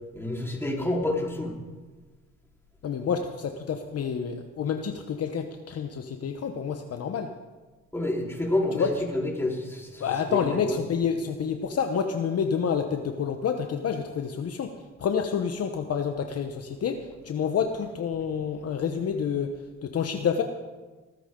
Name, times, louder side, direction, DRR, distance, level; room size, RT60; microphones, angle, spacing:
voice 1, 0.1-1.5 7.9-10.8, left 1 dB, 10° left, -2 dB, 4.2 m, -29 dB
voice 2, 2.8-7.3 8.7-8.9 10.0-14.7 15.0-20.4, left 7 dB, 50° left, 6 dB, 1.1 m, -28 dB
21.5 x 14.0 x 3.9 m, 1.3 s
cardioid pair, 90°, 30 cm